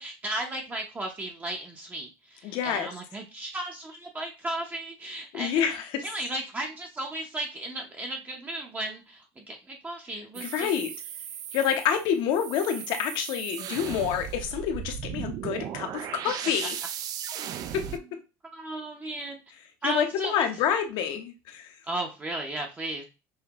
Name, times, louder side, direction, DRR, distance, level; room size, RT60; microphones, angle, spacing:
voice 1, 0.0-5.6 6.0-10.7 17.8-18.0 18.5-19.4 19.8-20.5 21.9-23.0, right 1 dB, 20° right, 2 dB, 0.7 m, -35 dB
voice 2, 2.4-2.9 5.3-6.0 10.4-10.9 11.5-16.7 17.7-17.8 19.8-21.7, left 8 dB, 65° left, 6 dB, 0.8 m, -28 dB
sound 1, 10.3-18.0, right 10 dB, 50° right, 0.3 m, -37 dB
5.6 x 2.1 x 2.9 m, 0.30 s
cardioid pair, 130°, 9 cm